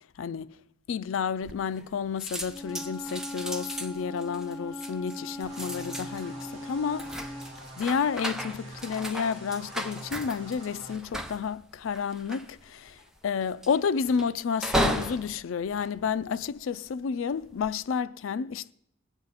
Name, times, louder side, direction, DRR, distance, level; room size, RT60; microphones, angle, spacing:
voice 1, 0.2-0.5 0.9-7.1 7.8-13.0 13.2-18.7, left 6 dB, 80° left, 0.4 m, -30 dB
sound 1, 1.4-1.9 2.2-16.8 17.3-17.7, equal, 5° right, 0.6 m, -36 dB
Wind instrument woodwind instrument, 2.4-7.5, left 1 dB, 20° left, 1.5 m, -40 dB
sound 2, 5.4-10.9, right 1 dB, 30° right, 3.6 m, -45 dB
20.5 x 8.1 x 4.0 m
head